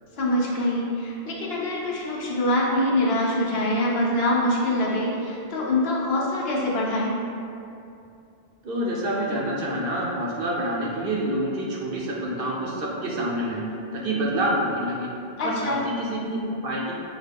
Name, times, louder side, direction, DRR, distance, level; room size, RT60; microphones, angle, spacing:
voice 1, 0.2-7.1 15.4-15.8, left 1 dB, 75° left, -4 dB, 1.0 m, -24 dB
voice 2, 8.6-13.6 13.9-15.1 15.4-16.9, right 1 dB, 65° right, -3 dB, 0.9 m, -27 dB
6.2 x 2.2 x 3.5 m, 2.6 s
omnidirectional pair, 1.1 m